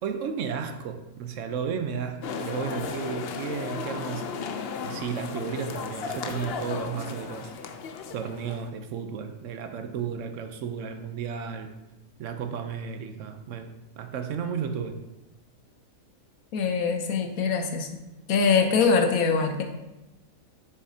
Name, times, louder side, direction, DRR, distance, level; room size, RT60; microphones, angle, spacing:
voice 1, 0.0-7.5 8.1-11.7 12.2-15.0, right 7 dB, 70° right, 7 dB, 0.9 m, -33 dB
sound 1, 2.2-8.7, left 6 dB, 65° left, 0.6 m, -35 dB
voice 2, 16.5-17.9 18.3-19.6, left 5 dB, 90° left, 6 dB, 1.2 m, -23 dB
7.1 x 6.3 x 2.7 m, 1.0 s
omnidirectional pair, 1.4 m